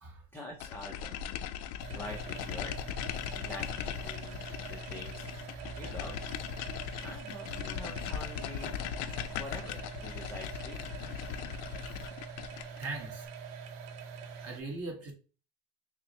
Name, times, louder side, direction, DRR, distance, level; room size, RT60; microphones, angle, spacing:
voice 1, 0.3-1.2 1.9-2.7 3.3-5.3 5.8-6.2 6.6-8.8 9.4-10.8 12.3-12.6 14.2-14.3, left 1 dB, 5° left, 0.4 m, -46 dB
sound 1, 0.6-12.9, left 10 dB, 90° left, 0.5 m, -39 dB
sound 2, 1.8-14.6, right 6 dB, 65° right, 0.8 m, -45 dB
voice 2, 12.8-13.3 14.4-15.1, right 3 dB, 35° right, 1.2 m, -40 dB
5.9 x 2.1 x 2.8 m
cardioid pair, 140°, 42 cm